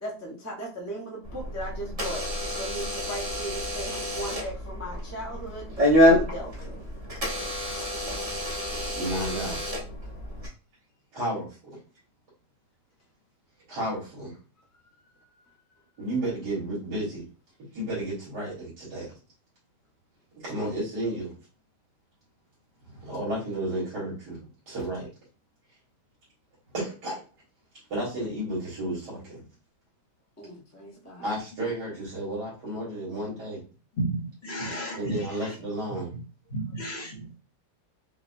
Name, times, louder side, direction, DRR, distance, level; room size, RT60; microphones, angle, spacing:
voice 1, 0.0-5.7 6.0-6.8 14.8-15.5 30.4-31.3, right 1 dB, 15° left, 0.5 m, -38 dB
Door / Alarm, 1.2-10.5, equal, 25° right, 1.1 m, -27 dB
voice 2, 8.9-9.6 11.1-11.6 13.7-14.3 16.0-17.2 17.7-19.1 20.4-21.3 22.8-24.4 24.7-25.1 26.7-27.2 27.9-29.4 31.2-33.6 34.9-36.1, right 1 dB, 75° right, 1.9 m, -32 dB
voice 3, 34.0-35.6 35.9-36.0 36.5-37.4, right 1 dB, 45° left, 1.1 m, -33 dB
5.0 x 2.2 x 2.6 m
omnidirectional pair, 1.8 m